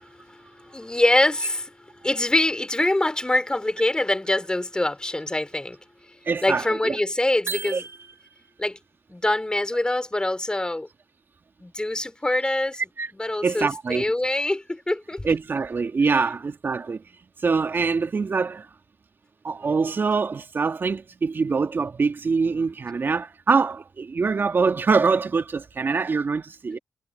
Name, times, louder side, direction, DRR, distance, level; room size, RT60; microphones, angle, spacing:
voice 1, 0.0-5.8 6.4-7.8 8.6-8.8 9.1-10.9 11.6-12.8 13.1-15.2 26.7-26.8, left 1 dB, 20° left, 4.3 m, -24 dB
voice 2, 6.3-7.0 7.7-7.8 13.0-13.1 13.4-14.0 15.2-17.0 17.4-18.7 19.4-26.8, right 4 dB, 50° right, 2.0 m, -24 dB
sound 1, 7.5-8.6, right 5 dB, 70° right, 1.1 m, -35 dB
supercardioid pair, 50°, 5 cm